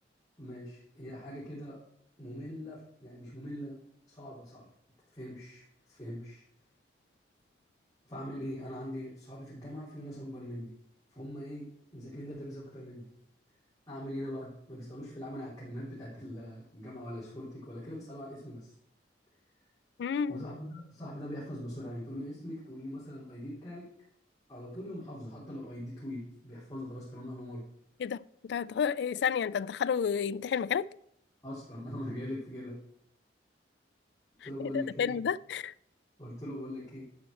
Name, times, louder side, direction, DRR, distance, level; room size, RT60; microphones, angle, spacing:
voice 1, 0.4-1.8 2.2-3.8 4.1-4.7 5.1-6.4 8.0-10.7 11.1-13.1 13.9-18.7 20.3-23.9 24.5-27.6 31.4-32.8 34.4-35.2 36.2-37.1, equal, 20° left, 3.4 m, -41 dB
voice 2, 20.0-20.4 28.0-30.9 34.4-35.7, left 7 dB, 70° left, 0.3 m, -31 dB
11.5 x 4.4 x 7.7 m
head